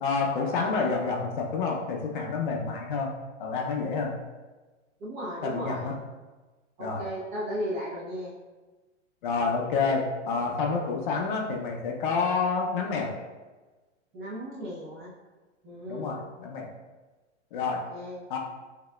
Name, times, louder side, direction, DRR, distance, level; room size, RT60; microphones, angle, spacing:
voice 1, 0.0-3.1 3.4-4.1 5.4-6.0 6.8-7.1 9.2-13.1 15.9-16.7 17.5-17.9 18.3-18.4, left 4 dB, 45° left, 0 dB, 0.5 m, -28 dB
voice 2, 5.0-5.9 6.8-8.3 14.1-15.1 15.6-16.1 17.9-18.2, equal, 20° right, -6 dB, 0.5 m, -35 dB
4.1 x 2.8 x 2.2 m, 1.2 s
hypercardioid pair, 150°, 37 cm